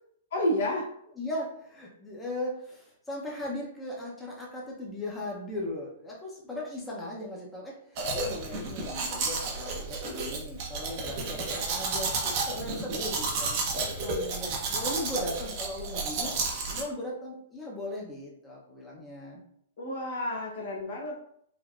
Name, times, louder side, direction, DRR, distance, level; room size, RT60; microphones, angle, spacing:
voice 1, 0.3-0.9 19.8-21.2, left 1 dB, 65° left, -1 dB, 0.9 m, -30 dB
voice 2, 1.2-13.6 14.0-16.3 16.7-19.4, left 1 dB, 10° left, -4 dB, 0.7 m, -38 dB
Domestic sounds home sounds, 8.0-16.8, right 3 dB, 45° right, 0.7 m, -32 dB
3.3 x 2.1 x 2.5 m, 0.69 s
hypercardioid pair, 130°, 0 cm